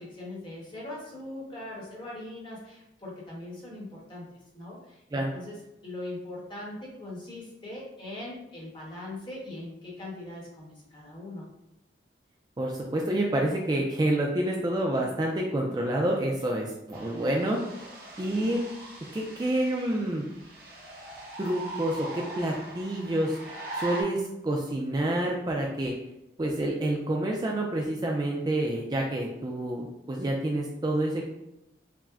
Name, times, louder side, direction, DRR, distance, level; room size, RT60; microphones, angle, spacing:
voice 1, 0.0-4.3 4.5-11.5 16.4-16.5, left 1 dB, 25° left, -4 dB, 1.0 m, -41 dB
voice 2, 12.6-17.6 18.2-18.6 19.1-20.2 21.4-23.4 23.7-25.9 26.4-31.3, right 1 dB, 20° right, 0 dB, 0.3 m, -28 dB
sound 1, 16.9-24.0, right 2 dB, 55° right, 0.8 m, -41 dB
5.6 x 2.1 x 2.4 m, 0.86 s
head